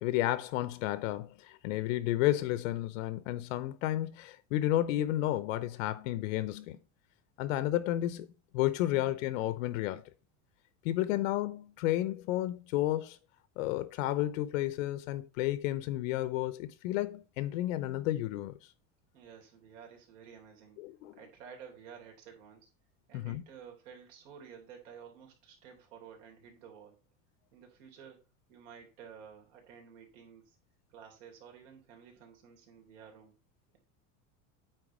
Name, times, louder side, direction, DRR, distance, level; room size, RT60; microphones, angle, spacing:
voice 1, 0.0-6.8 7.4-8.3 8.5-10.0 10.8-13.2 13.6-18.6 20.8-21.2 23.1-23.4, left 14 dB, 80° left, 0.8 m, -32 dB
voice 2, 19.1-20.8 21.1-22.7 23.1-27.0 27.5-28.2 28.5-30.6 30.9-33.3, right 7 dB, 65° right, 3.5 m, -52 dB
9.1 x 4.0 x 5.0 m
cardioid pair, 180°, 39 cm